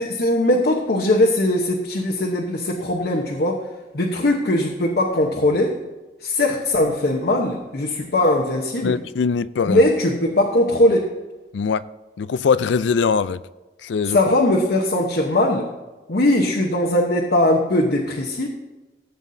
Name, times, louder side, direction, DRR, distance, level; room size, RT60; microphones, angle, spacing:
voice 1, 0.0-3.6 3.9-5.8 6.2-9.0 9.7-11.1 14.1-15.7 16.1-18.5, left 1 dB, 60° left, 1.0 m, -20 dB
voice 2, 8.8-9.8 11.5-11.8 12.2-13.4 13.8-14.2, left 5 dB, 85° left, 0.4 m, -21 dB
15.0 x 8.0 x 2.7 m
head